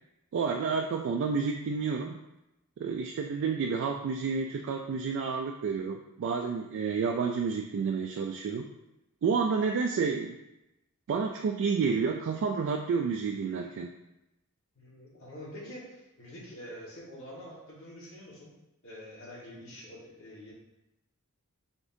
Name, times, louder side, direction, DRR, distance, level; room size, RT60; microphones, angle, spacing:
voice 1, 0.3-2.2 2.8-8.7 9.2-10.4 11.1-13.9, right 5 dB, 55° right, 2 dB, 0.3 m, -30 dB
voice 2, 14.7-18.5 18.8-20.5, equal, 65° left, -4 dB, 1.4 m, -46 dB
5.0 x 3.5 x 2.6 m, 0.93 s
head